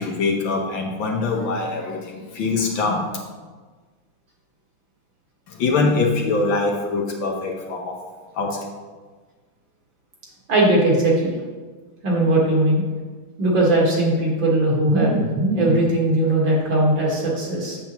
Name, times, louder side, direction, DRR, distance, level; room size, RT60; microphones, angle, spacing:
voice 1, 0.0-3.2 5.5-8.0 8.3-8.7, left 3 dB, 65° left, 0 dB, 1.6 m, -23 dB
voice 2, 10.5-11.4 12.0-12.8 13.4-17.8, right 1 dB, 65° right, -3 dB, 2.3 m, -19 dB
8.2 x 7.0 x 3.0 m, 1.4 s
omnidirectional pair, 2.3 m